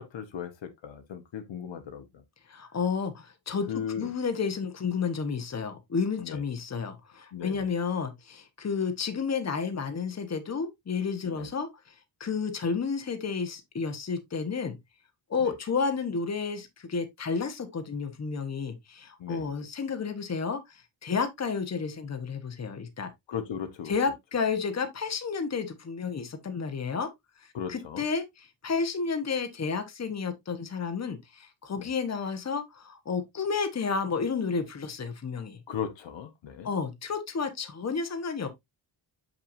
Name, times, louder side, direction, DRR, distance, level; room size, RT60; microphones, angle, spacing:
voice 1, 0.0-2.2 3.7-4.1 6.2-6.4 7.3-7.7 11.2-11.5 15.4-15.5 19.2-19.5 23.3-23.9 27.5-28.0 31.8-31.9 35.7-36.7, left 8 dB, 70° left, 1.2 m, -37 dB
voice 2, 2.5-11.9 12.2-14.8 15.3-23.1 23.9-27.1 27.7-35.6 36.6-38.5, left 5 dB, 35° left, 1.2 m, -31 dB
6.7 x 6.0 x 2.6 m
wide cardioid pair, 130°, 46 cm